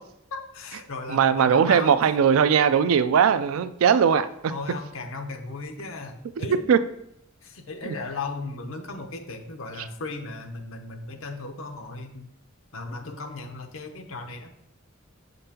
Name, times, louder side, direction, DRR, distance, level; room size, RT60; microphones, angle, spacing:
voice 1, 0.3-2.0 4.5-6.6 7.4-12.3 12.7-14.5, left 3 dB, 70° left, 6 dB, 0.7 m, -36 dB
voice 2, 1.1-4.3 6.7-6.8 7.9-8.0, right 7 dB, 85° right, 13 dB, 0.4 m, -19 dB
6.7 x 5.2 x 2.8 m, 0.75 s
head